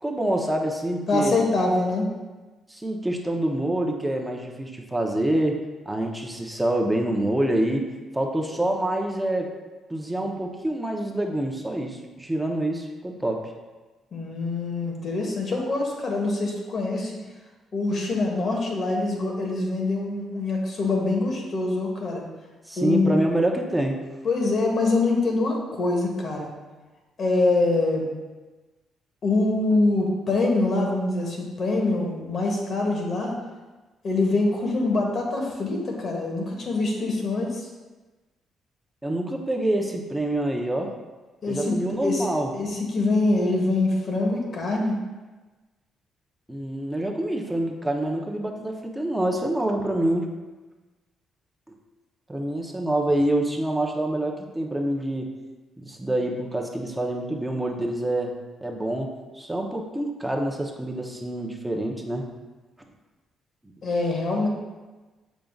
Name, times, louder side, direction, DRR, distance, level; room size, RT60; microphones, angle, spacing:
voice 1, 0.0-1.3 2.7-5.6 5.9-7.9 8.1-9.5 9.9-13.5 22.7-24.1 39.0-40.9 41.5-42.5 46.5-50.3 51.7-51.8 52.3-55.3 55.8-58.3 58.6-62.3, right 1 dB, 10° right, 1 dB, 0.9 m, -26 dB
voice 2, 1.1-2.1 14.1-17.1 17.7-22.2 22.8-23.2 24.2-26.5 27.2-28.1 29.2-33.3 34.0-37.6 41.4-41.8 42.0-42.2 42.5-45.0 63.8-64.5, left 2 dB, 50° left, 0 dB, 1.5 m, -24 dB
7.3 x 5.2 x 2.4 m, 1.2 s
cardioid pair, 90°, 0 cm